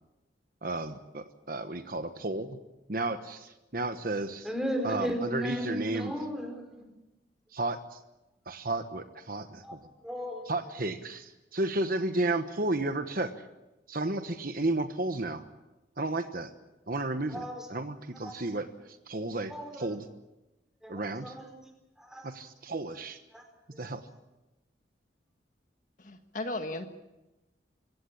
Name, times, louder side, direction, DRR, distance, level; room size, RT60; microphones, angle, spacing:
voice 1, 0.6-2.6 2.9-4.5 4.8-6.3 7.5-8.0 8.4-9.9 10.4-13.5 13.9-15.5 16.0-16.5 16.9-20.1 20.9-21.4 22.2-23.2 23.8-24.1, right 2 dB, 50° right, 9 dB, 1.2 m, -33 dB
voice 2, 4.4-6.6 10.0-10.4 17.3-17.6 18.2-18.3 19.5-19.7 20.8-21.5 22.1-22.3 23.3-23.4, equal, 5° right, 4 dB, 4.9 m, -34 dB
voice 3, 26.0-26.9, left 2 dB, 45° left, 6 dB, 1.5 m, -35 dB
26.0 x 16.0 x 8.6 m, 1.0 s
head